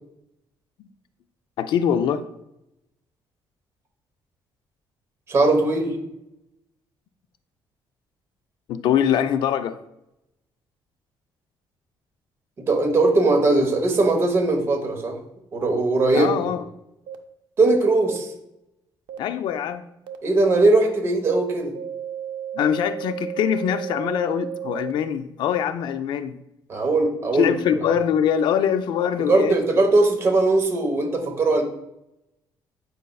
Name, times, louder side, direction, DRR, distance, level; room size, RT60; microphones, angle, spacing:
voice 1, 1.6-2.2 8.7-9.8 16.1-16.6 19.2-19.8 22.5-26.4 27.3-29.6, left 8 dB, 65° left, 11 dB, 0.4 m, -23 dB
voice 2, 5.3-6.0 12.7-15.2 15.5-16.3 17.6-18.3 20.2-21.7 26.7-27.5 29.3-31.6, right 2 dB, 30° right, 2 dB, 1.0 m, -19 dB
sound 1, 16.1-16.2 17.1-17.2 18.1-18.2 19.1-19.2 20.1-20.2 20.7-20.8 21.2-21.3 21.7-24.9, right 10 dB, 70° right, 0.5 m, -33 dB
8.3 x 5.2 x 2.3 m, 0.86 s
cardioid pair, 170°, 9 cm